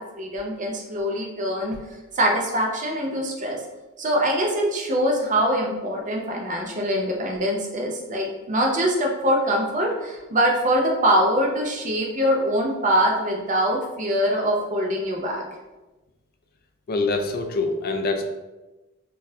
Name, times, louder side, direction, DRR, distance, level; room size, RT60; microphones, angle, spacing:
voice 1, 0.0-1.8 2.1-3.6 4.0-15.4, equal, 35° right, 0 dB, 0.5 m, -23 dB
voice 2, 16.9-18.2, left 3 dB, 45° left, 4 dB, 0.3 m, -24 dB
3.9 x 2.5 x 2.6 m, 1.1 s
head